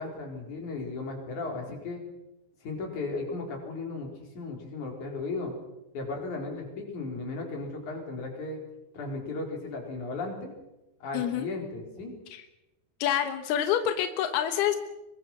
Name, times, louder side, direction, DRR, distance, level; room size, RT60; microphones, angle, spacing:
voice 1, 0.0-2.0 2.6-4.1 4.4-5.5 5.9-8.6 8.9-10.5 11.0-12.1, left 3 dB, 50° left, 1 dB, 5.7 m, -35 dB
voice 2, 11.1-11.5 12.3-12.4 13.0-14.8, left 10 dB, 90° left, 7 dB, 3.2 m, -27 dB
25.0 x 22.0 x 6.1 m, 0.98 s
omnidirectional pair, 4.4 m